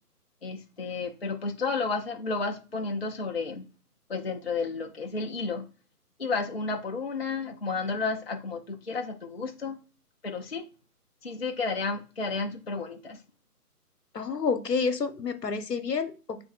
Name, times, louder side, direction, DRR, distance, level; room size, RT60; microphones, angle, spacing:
voice 1, 0.4-3.7 4.1-5.7 6.2-9.8 10.2-10.6 11.2-13.2, left 4 dB, 40° left, 0.5 m, -32 dB
voice 2, 14.1-16.4, left 5 dB, 80° left, 0.9 m, -29 dB
3.5 x 2.4 x 4.1 m
figure-of-eight pair, 145°, 47 cm